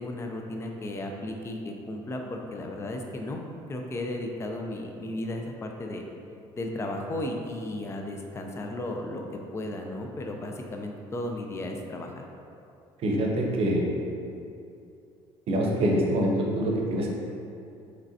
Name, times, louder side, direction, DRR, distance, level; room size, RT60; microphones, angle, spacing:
voice 1, 0.0-3.4 3.7-6.0 6.6-12.2, left 1 dB, 25° left, 2 dB, 0.4 m, -34 dB
voice 2, 13.0-13.8 15.5-17.1, right 1 dB, 55° right, 0 dB, 0.7 m, -25 dB
5.0 x 3.2 x 2.7 m, 2.6 s
cardioid pair, 100°, 11 cm